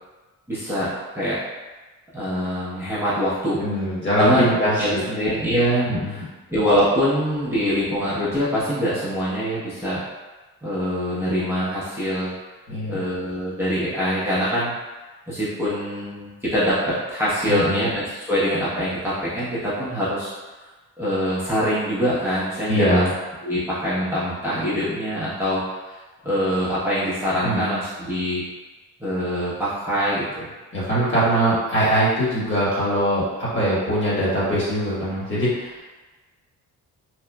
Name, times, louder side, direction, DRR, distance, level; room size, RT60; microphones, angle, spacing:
voice 1, 0.5-1.4 2.1-3.6 4.2-4.4 4.8-6.2 6.5-10.0 10.6-12.3 12.9-14.7 15.3-20.3 21.0-23.0 23.4-25.6 25.9-26.0 26.2-28.4 29.0-30.5, equal, 5° right, -12 dB, 0.8 m, -24 dB
voice 2, 3.6-5.3 5.9-6.1 12.7-13.0 17.5-17.8 22.7-23.1 27.4-27.7 30.7-35.8, right 1 dB, 30° left, -8 dB, 1.3 m, -22 dB
3.0 x 2.3 x 2.2 m, 1.2 s
cardioid pair, 70°, 37 cm